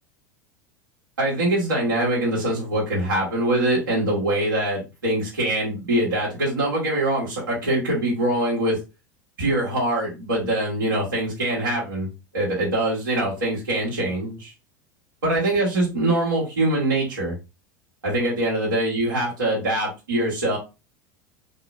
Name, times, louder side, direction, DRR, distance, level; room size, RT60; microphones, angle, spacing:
voice 1, 1.2-8.8 9.4-12.1 12.3-14.5 15.2-17.3 18.0-20.6, right 1 dB, 80° right, -6 dB, 1.9 m, -23 dB
4.7 x 2.9 x 2.6 m, 0.27 s
figure-of-eight pair, 80°, 11 cm